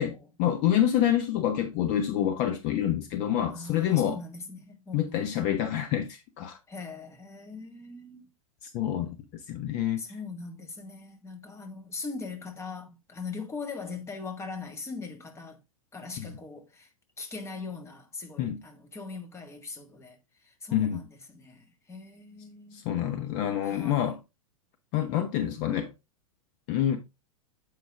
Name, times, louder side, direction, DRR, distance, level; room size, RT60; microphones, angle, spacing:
voice 1, 0.0-4.2 4.9-6.1 6.4-6.6 8.6-9.2 9.5-10.0 16.2-16.3 18.4-18.6 20.7-21.0 22.7-24.2 24.9-25.9 26.7-27.0, left 10 dB, 40° left, 1.0 m, -27 dB
voice 2, 3.5-5.2 6.7-8.3 10.0-15.6 15.9-20.2 20.4-22.9 23.6-24.1, left 4 dB, 15° left, 1.5 m, -41 dB
7.9 x 5.0 x 3.5 m
figure-of-eight pair, 95°, 17 cm